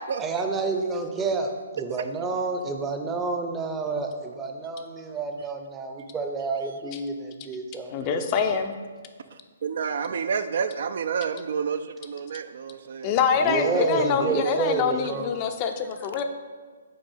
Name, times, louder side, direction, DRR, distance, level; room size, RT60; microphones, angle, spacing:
voice 1, 0.2-8.3 13.4-15.3, right 4 dB, 15° right, 5 dB, 0.6 m, -29 dB
voice 2, 7.9-8.7 13.0-16.2, left 6 dB, 30° left, 6 dB, 0.5 m, -25 dB
voice 3, 9.6-13.1 13.5-14.6, right 6 dB, 55° right, 10 dB, 0.3 m, -29 dB
5.4 x 4.1 x 5.5 m, 1.5 s
figure-of-eight pair, 130°, 0 cm